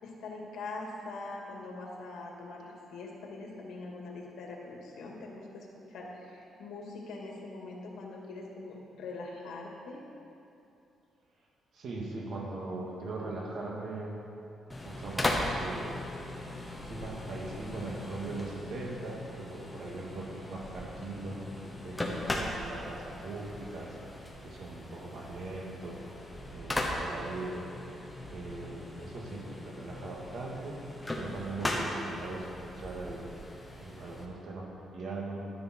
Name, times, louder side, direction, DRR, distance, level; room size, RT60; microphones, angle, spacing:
voice 1, 0.0-10.0, left 3 dB, 80° left, -1 dB, 2.3 m, -43 dB
voice 2, 11.7-14.2 14.8-16.1 16.7-22.0 22.3-24.0 24.4-26.0 26.5-27.7 28.3-33.3 33.8-35.4, right 2 dB, 55° right, -2 dB, 2.2 m, -40 dB
sound 1, 14.7-34.3, left 1 dB, 10° left, 1.1 m, -38 dB
12.0 x 10.0 x 4.6 m, 2.7 s
cardioid pair, 160°, 0 cm